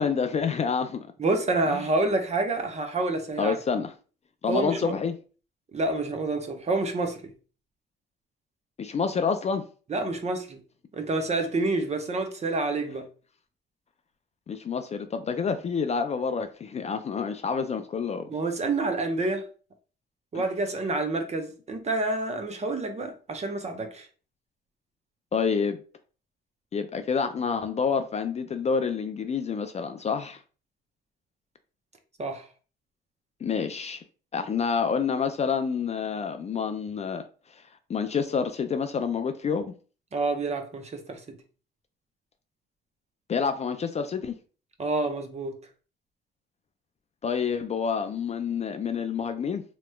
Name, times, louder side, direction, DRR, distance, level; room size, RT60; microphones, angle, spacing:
voice 1, 0.0-1.1 1.7-1.8 3.4-3.9 4.4-5.1 8.8-9.6 14.5-18.3 20.3-20.4 25.3-25.8 26.7-30.4 33.4-34.0 34.3-37.2 37.9-39.7 43.3-44.3 47.2-49.6, left 6 dB, 35° left, 0.3 m, -28 dB
voice 2, 1.2-3.5 4.5-4.9 5.7-7.3 9.9-10.6 10.9-13.1 18.3-19.5 20.3-24.1 32.2-32.5 40.1-41.4 44.8-45.5, right 2 dB, 35° right, 0.7 m, -28 dB
3.1 x 2.9 x 2.2 m
cardioid pair, 90°, 20 cm